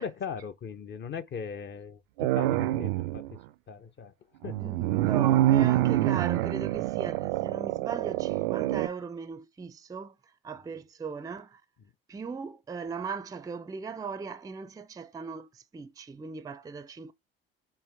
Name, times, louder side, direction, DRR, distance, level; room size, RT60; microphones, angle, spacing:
voice 1, 0.0-3.4 3.7-4.1 4.4-4.7, left 6 dB, 40° left, 0.7 m, -39 dB
sound 1, 2.2-3.3 4.4-8.9, right 14 dB, 70° right, 0.5 m, -26 dB
voice 2, 4.6-11.6 12.1-17.1, right 5 dB, 10° right, 0.4 m, -38 dB
4.5 x 3.1 x 3.5 m
hypercardioid pair, 60°, 29 cm